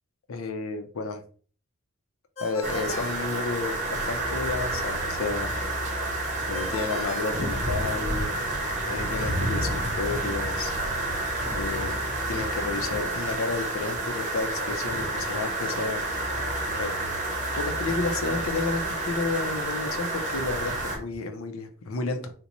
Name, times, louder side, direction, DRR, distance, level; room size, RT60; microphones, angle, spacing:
voice 1, 0.3-1.2 2.4-5.5 6.5-8.3 8.9-10.7 11.5-11.9 12.3-16.3 16.8-17.1 17.6-22.3, left 3 dB, 80° left, 0.6 m, -31 dB
Ringtone, 2.4-4.0 6.5-8.2, left 3 dB, 30° left, 0.8 m, -41 dB
sound 1, 2.6-21.0, right 2 dB, 35° right, 0.8 m, -29 dB
sound 2, 7.3-21.2, left 1 dB, 5° right, 0.7 m, -44 dB
3.9 x 2.1 x 2.9 m
head